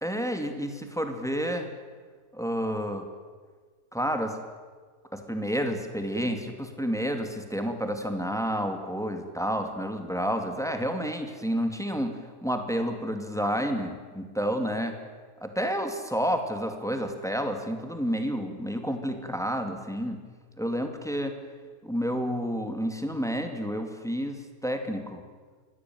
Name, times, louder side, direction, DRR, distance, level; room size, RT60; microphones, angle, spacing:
voice 1, 0.0-1.7 2.3-3.1 3.9-4.4 5.1-15.0 15.4-20.2 20.6-21.4 21.8-25.2, equal, ahead, 5 dB, 2.4 m, -30 dB
24.5 x 17.0 x 9.4 m, 1.5 s
omnidirectional pair, 1.7 m